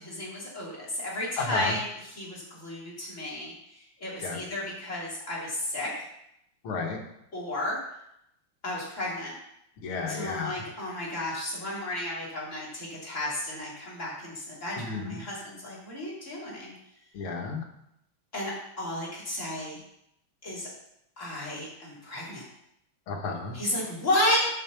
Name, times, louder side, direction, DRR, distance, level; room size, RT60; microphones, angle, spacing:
voice 1, 0.0-1.9 2.2-3.5 4.0-6.1 7.3-7.8 8.6-9.3 10.1-16.7 18.3-19.8 20.4-20.7 21.2-22.4 23.5-24.5, left 1 dB, 35° left, -6 dB, 3.1 m, -32 dB
voice 2, 1.4-1.8 4.2-4.4 6.6-7.0 9.8-10.7 14.8-15.2 17.1-17.6 23.1-23.6, left 4 dB, 90° left, 3 dB, 2.2 m, -32 dB
7.4 x 5.4 x 7.0 m, 0.78 s
omnidirectional pair, 2.4 m